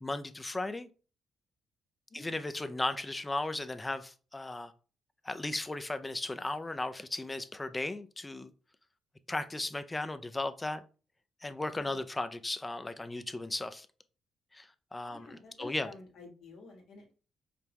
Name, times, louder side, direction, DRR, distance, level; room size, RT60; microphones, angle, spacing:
voice 1, 0.0-0.9 2.1-4.7 5.2-8.5 9.3-10.8 11.4-13.9 14.5-15.9, left 2 dB, 15° left, 0.4 m, -36 dB
voice 2, 2.1-2.4 15.1-17.1, left 3 dB, 75° left, 1.5 m, -51 dB
5.1 x 2.2 x 3.0 m
cardioid pair, 90°, 0 cm